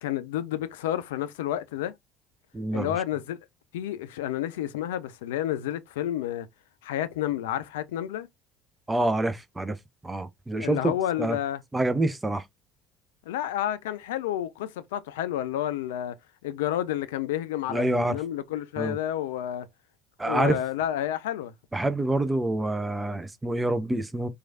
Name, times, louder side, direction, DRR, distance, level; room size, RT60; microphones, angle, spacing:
voice 1, 0.0-1.9 2.7-3.4 3.7-6.5 6.8-8.3 10.6-11.6 13.3-16.1 16.4-19.7 20.2-21.5, left 12 dB, 70° left, 0.3 m, -30 dB
voice 2, 2.5-2.9 8.9-9.8 10.0-10.9 11.2-11.4 11.7-12.4 17.7-18.2 18.8-19.0 20.2-20.6 21.7-24.3, right 2 dB, 15° right, 0.5 m, -26 dB
3.0 x 2.3 x 2.6 m
figure-of-eight pair, 60°, 0 cm